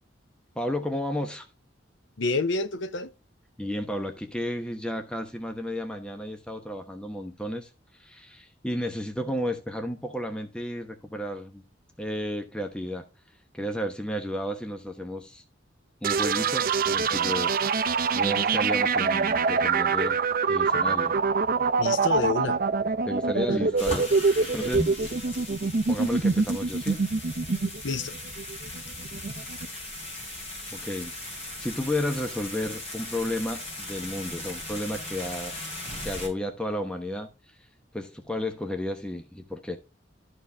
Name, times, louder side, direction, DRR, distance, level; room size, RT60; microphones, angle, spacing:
voice 1, 0.6-1.5 3.6-7.7 8.0-11.6 12.0-13.1 13.5-15.4 16.0-17.9 18.1-20.2 20.5-21.1 23.1-25.0 25.9-27.1 30.7-35.6 36.0-37.3 37.9-39.8, left 1 dB, 5° left, 0.9 m, -32 dB
voice 2, 2.2-3.1 21.8-22.6 23.5-23.6 27.8-28.1, left 3 dB, 80° left, 0.7 m, -28 dB
sound 1, 16.0-29.7, right 5 dB, 50° right, 0.6 m, -25 dB
sound 2, 23.8-36.3, left 1 dB, 35° left, 4.5 m, -37 dB
13.0 x 4.6 x 3.4 m
head